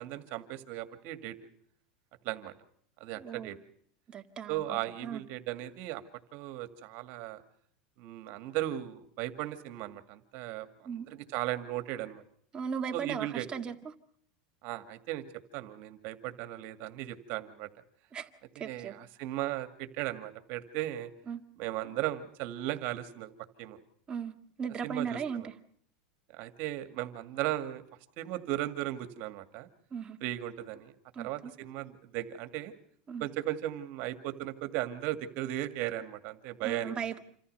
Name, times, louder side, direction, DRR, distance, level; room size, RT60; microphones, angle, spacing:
voice 1, 0.0-1.4 2.2-2.5 3.0-3.6 4.5-6.0 6.3-7.4 8.0-12.2 12.9-13.5 14.6-15.2 15.5-17.7 18.6-21.1 21.6-23.3 23.6-23.8 24.8-25.5 26.3-27.8 28.2-29.7 30.2-32.7 33.2-36.9, right 14 dB, 55° right, 9 dB, 2.1 m, -36 dB
voice 2, 3.1-3.5 4.1-5.2 10.9-11.1 12.5-13.8 18.1-18.3 18.6-18.9 21.3-21.4 24.1-25.4 29.9-30.2 31.1-31.5 33.1-33.3 36.6-37.2, right 7 dB, 20° right, 4 dB, 1.8 m, -37 dB
27.5 x 14.5 x 6.7 m, 0.62 s
supercardioid pair, 135°, 4 cm